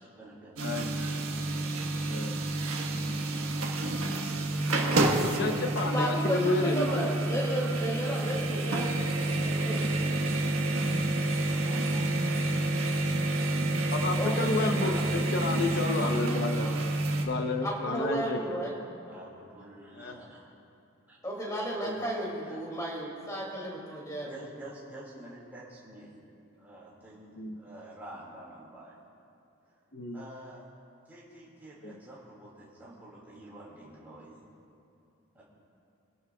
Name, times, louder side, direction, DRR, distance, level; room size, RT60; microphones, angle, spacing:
voice 1, 0.1-1.2 11.3-12.8 13.4-14.0 14.7-15.3 15.9-17.3 19.0-20.4 21.1-21.2 22.4-22.6 23.9-26.1 26.5-29.0 30.1-30.6 31.1-34.4 35.3-35.4, right 1 dB, 10° right, -8 dB, 2.6 m, -48 dB
sound 1, 0.6-17.3, right 2 dB, 80° right, 1.3 m, -29 dB
voice 2, 4.9-7.0 13.9-16.7 17.2-18.4 20.0-20.1 21.8-22.0 27.4-27.6 29.9-30.2 31.8-32.0, left 2 dB, 50° left, 5 dB, 0.7 m, -31 dB
voice 3, 5.9-9.8 14.2-14.7 17.6-18.7 21.2-24.3, right 1 dB, 15° left, -4 dB, 2.5 m, -33 dB
24.0 x 12.0 x 2.3 m, 2.6 s
head